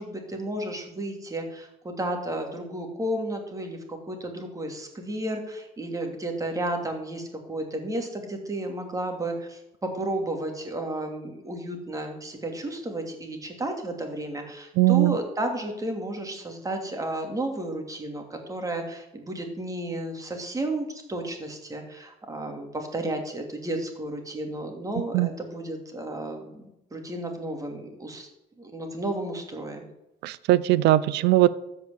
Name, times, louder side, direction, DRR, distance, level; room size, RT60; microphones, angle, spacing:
voice 1, 0.0-26.6 26.9-28.3 28.6-29.8, right 1 dB, 20° right, 3 dB, 2.7 m, -32 dB
voice 2, 14.8-15.1 25.1-25.3 30.2-31.5, right 16 dB, 85° right, 17 dB, 0.6 m, -20 dB
13.5 x 5.3 x 8.3 m, 0.89 s
cardioid pair, 110°, 17 cm